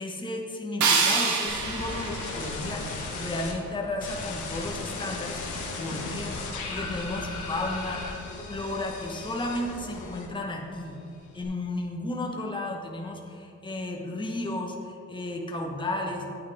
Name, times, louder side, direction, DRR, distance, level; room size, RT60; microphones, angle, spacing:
voice 1, 0.0-6.3 6.7-8.2 8.5-11.0 11.3-16.3, left 1 dB, 15° left, 0 dB, 1.1 m, -33 dB
sound 1, 0.8-3.8, right 4 dB, 75° right, 1.3 m, -27 dB
sound 2, 1.5-3.5 4.0-10.6 10.9-11.4, left 3 dB, 80° left, 1.6 m, -36 dB
9.2 x 8.6 x 3.5 m, 2.8 s
cardioid pair, 90°, 30 cm